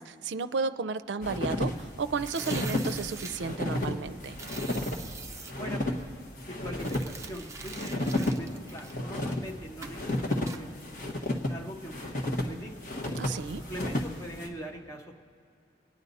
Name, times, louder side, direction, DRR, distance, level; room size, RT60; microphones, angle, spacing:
voice 1, 0.0-4.4 13.2-13.6, right 4 dB, 85° right, 12 dB, 0.4 m, -33 dB
sound 1, 1.2-14.5, left 1 dB, 45° left, 1.3 m, -33 dB
sound 2, 2.2-3.4 4.3-5.5 6.7-9.4 9.8-10.0 10.5-10.6, right 4 dB, 15° right, 0.5 m, -43 dB
voice 2, 5.5-6.1 6.5-10.8 11.5-12.7 13.6-15.2, equal, 15° left, 0 dB, 1.1 m, -42 dB
26.0 x 9.6 x 4.1 m, 2.5 s
head